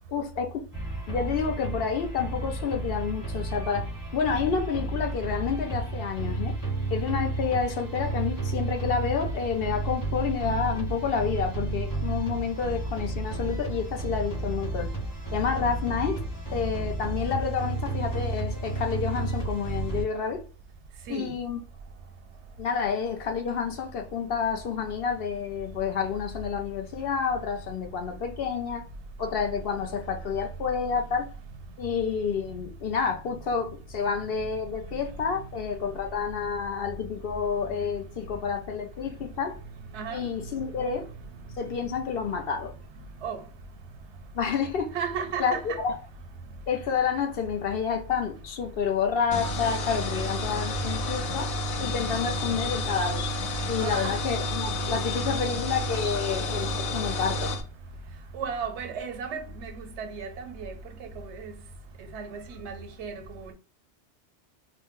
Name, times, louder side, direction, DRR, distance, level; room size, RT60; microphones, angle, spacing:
voice 1, 0.1-0.7 1.1-6.6 6.9-14.9 15.3-16.2 16.5-20.4 21.1-21.6 22.6-28.9 29.2-31.3 31.8-39.6 40.1-41.1 41.5-42.7 44.3-44.9 45.4-45.5 45.8-45.9 46.7-51.5 51.8-53.2 53.7-57.5, left 6 dB, 60° left, 0.7 m, -29 dB
sound 1, 0.7-20.0, right 2 dB, 20° left, 0.8 m, -32 dB
voice 2, 44.9-45.8 53.8-54.2 58.3-60.7 61.2-61.5 62.1-63.5, right 6 dB, 80° right, 0.9 m, -35 dB
sound 2, 49.3-57.6, left 1 dB, 90° left, 0.9 m, -30 dB
2.5 x 2.1 x 3.6 m
omnidirectional pair, 1.2 m